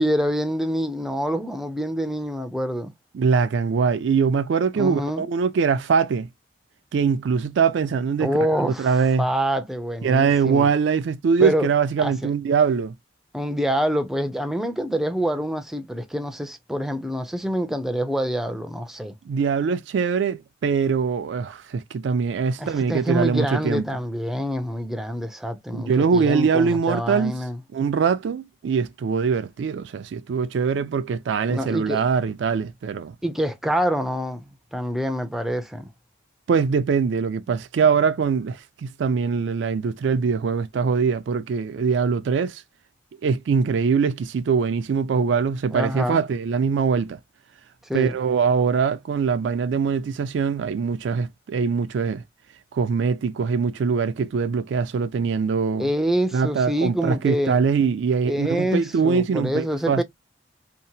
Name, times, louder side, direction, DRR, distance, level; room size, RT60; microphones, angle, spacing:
voice 1, 0.0-2.9 4.8-5.3 8.2-8.9 9.2-10.7 11.4-11.7 12.0-12.3 13.3-19.1 22.6-27.6 31.5-32.0 33.2-35.9 45.7-46.2 47.9-48.1 55.8-57.6 58.3-60.0, equal, ahead, 0.4 m, -26 dB
voice 2, 3.1-6.3 6.9-9.3 10.0-12.9 19.3-23.9 25.7-27.4 27.7-33.1 36.5-42.6 43.2-47.2 47.9-52.2 52.7-55.9 56.3-60.0, right 5 dB, 75° right, 0.3 m, -22 dB
2.8 x 2.0 x 2.6 m
head